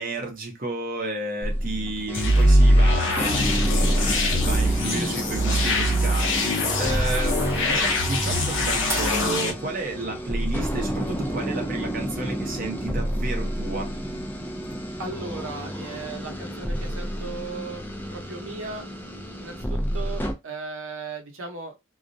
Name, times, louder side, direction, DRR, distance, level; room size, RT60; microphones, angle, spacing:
voice 1, 0.0-13.9, right 2 dB, 40° right, 0.7 m, -32 dB
sound 1, 1.4-20.3, equal, 10° left, 0.3 m, -31 dB
sound 2, 2.1-9.5, equal, 65° left, 0.7 m, -21 dB
sound 3, 4.4-9.4, right 1 dB, 10° right, 0.8 m, -35 dB
voice 2, 15.0-17.8 18.1-18.9 19.4-21.9, right 4 dB, 75° right, 0.8 m, -37 dB
2.3 x 2.0 x 2.5 m
head